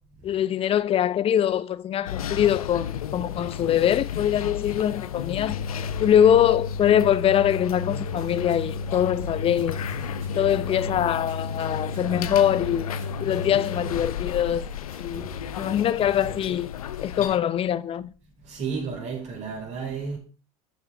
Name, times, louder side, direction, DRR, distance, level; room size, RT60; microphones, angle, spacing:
voice 1, 0.2-5.6 6.0-9.8 10.3-12.9 13.2-14.6 15.0-18.1, left 10 dB, 30° left, 0.7 m, -23 dB
sound 1, 2.1-17.4, left 6 dB, 70° left, 0.8 m, -32 dB
sound 2, 8.1-16.7, right 5 dB, 65° right, 2.8 m, -44 dB
voice 2, 18.4-20.2, right 5 dB, 40° right, 5.0 m, -32 dB
13.0 x 7.1 x 3.5 m
figure-of-eight pair, 80°, 19 cm